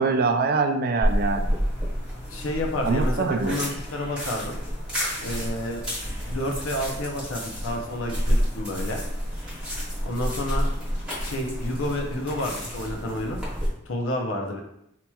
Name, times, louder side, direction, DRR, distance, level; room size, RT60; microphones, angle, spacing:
voice 1, 0.0-1.6 2.8-3.6, right 4 dB, 50° right, 5 dB, 0.4 m, -24 dB
sound 1, 1.0-13.7, equal, 5° right, 1.0 m, -29 dB
voice 2, 2.3-4.5 5.2-5.8 6.3-9.0 10.0-10.7 11.2-13.4 13.9-14.6, left 1 dB, 85° left, 1 dB, 0.7 m, -30 dB
4.3 x 2.9 x 2.3 m, 0.80 s
head